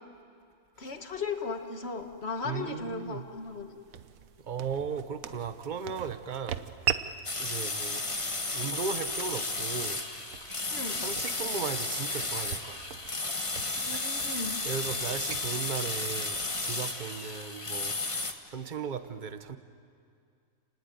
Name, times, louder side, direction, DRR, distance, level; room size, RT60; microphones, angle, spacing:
voice 1, 0.8-3.8 10.7-11.0 13.8-14.6, left 4 dB, 50° left, 6 dB, 1.9 m, -36 dB
sound 1, 0.8-16.9, right 9 dB, 85° right, 1.3 m, -42 dB
voice 2, 2.4-3.3 4.5-6.6 7.4-8.0 8.5-10.0 11.0-12.9 13.9-14.0 14.6-17.9 18.5-19.6, right 6 dB, 40° right, 10 dB, 1.2 m, -36 dB
sound 2, 7.2-18.3, left 2 dB, 25° left, 1.4 m, -33 dB
30.0 x 19.0 x 9.4 m, 2.3 s
omnidirectional pair, 1.4 m